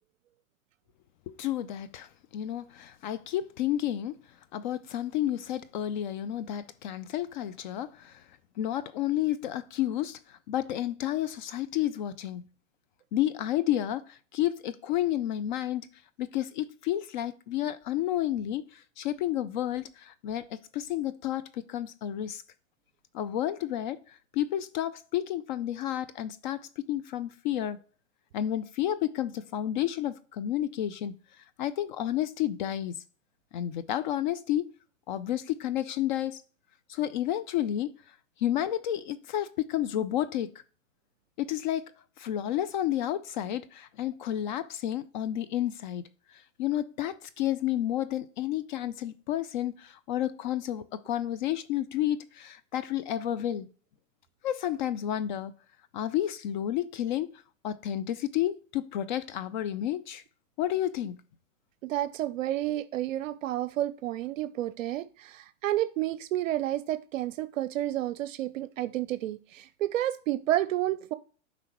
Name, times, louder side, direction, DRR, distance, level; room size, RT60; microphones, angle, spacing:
voice 1, 1.3-4.2 4.5-8.2 8.6-12.5 13.1-15.9 16.2-22.4 23.1-27.8 28.3-31.1 31.6-33.0 33.5-34.7 35.1-36.4 36.9-37.9 38.4-40.5 41.4-41.9 42.2-46.0 46.3-53.7 54.4-55.5 55.9-57.3 57.6-60.2 60.6-61.2, left 12 dB, 40° left, 0.4 m, -31 dB
voice 2, 61.8-71.1, right 13 dB, 70° right, 0.6 m, -30 dB
8.2 x 5.0 x 3.0 m
hypercardioid pair, 125°, 40 cm